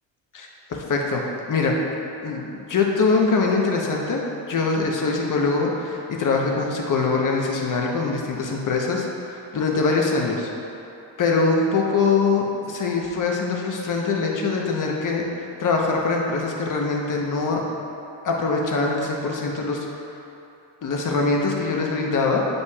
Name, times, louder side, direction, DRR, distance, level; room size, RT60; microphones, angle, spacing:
voice 1, 0.3-1.8 2.2-10.5 11.2-17.6 18.2-19.9 20.8-22.4, left 4 dB, 45° left, 0 dB, 1.0 m, -23 dB
8.1 x 5.3 x 2.4 m, 2.9 s
cardioid pair, 90°, 43 cm